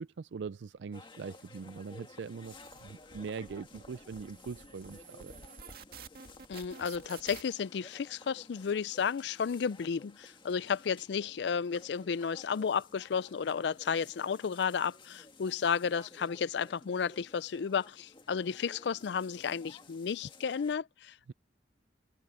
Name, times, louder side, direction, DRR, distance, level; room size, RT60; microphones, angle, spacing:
voice 1, 0.0-5.4 21.3-21.4, right 5 dB, 80° right, 0.4 m, -42 dB
sound 1, 0.9-20.8, left 3 dB, 30° left, 1.8 m, -55 dB
sound 2, 2.4-7.4, right 5 dB, 55° right, 2.1 m, -51 dB
voice 2, 6.5-21.3, left 6 dB, 70° left, 0.4 m, -33 dB
head